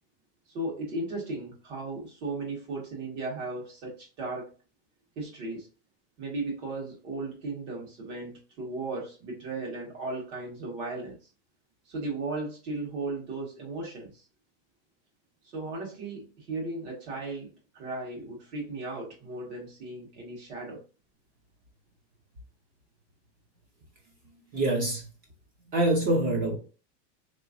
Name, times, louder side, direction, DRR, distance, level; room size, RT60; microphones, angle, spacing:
voice 1, 0.5-4.5 5.1-5.7 6.2-11.3 11.8-14.3 15.4-20.8, right 2 dB, 70° right, 1.5 m, -36 dB
voice 2, 24.5-25.0 25.7-26.6, right 1 dB, 25° right, 0.5 m, -25 dB
3.4 x 3.0 x 2.5 m
cardioid pair, 180°, 35 cm